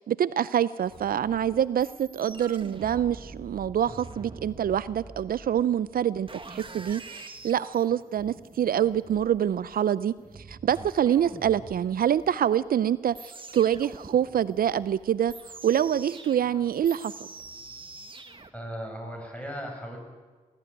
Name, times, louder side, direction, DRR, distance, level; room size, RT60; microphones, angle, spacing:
voice 1, 0.0-15.3 15.6-17.1, right 9 dB, 70° right, 17 dB, 0.5 m, -26 dB
sound 1, 0.8-18.5, right 3 dB, 35° right, 1.8 m, -46 dB
voice 2, 18.5-20.0, equal, 10° left, 2 dB, 7.8 m, -37 dB
19.5 x 14.5 x 9.3 m, 1.3 s
supercardioid pair, 45°, 16 cm